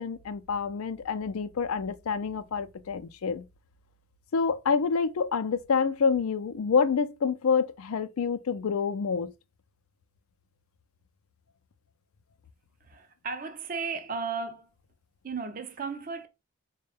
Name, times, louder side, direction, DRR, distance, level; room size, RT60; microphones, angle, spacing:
voice 1, 0.0-3.4 4.3-9.3, left 5 dB, 85° left, 0.4 m, -27 dB
voice 2, 12.8-14.7 15.2-16.3, right 5 dB, 40° right, 0.5 m, -35 dB
4.1 x 2.2 x 3.4 m
head